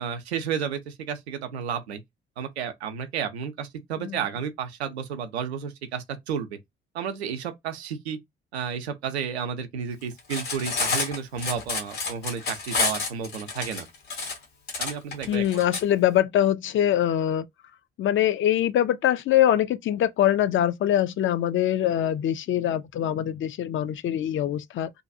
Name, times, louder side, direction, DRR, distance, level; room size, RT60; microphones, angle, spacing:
voice 1, 0.0-2.0 2.4-6.6 6.9-8.2 8.5-13.9 14.8-15.6, right 7 dB, 85° right, 0.5 m, -32 dB
Cutlery silverware, 10.2-15.8, left 4 dB, 80° left, 1.2 m, -29 dB
voice 2, 15.3-17.4 18.0-24.9, left 11 dB, 40° left, 0.4 m, -23 dB
2.6 x 2.2 x 2.6 m
figure-of-eight pair, 40°, 31 cm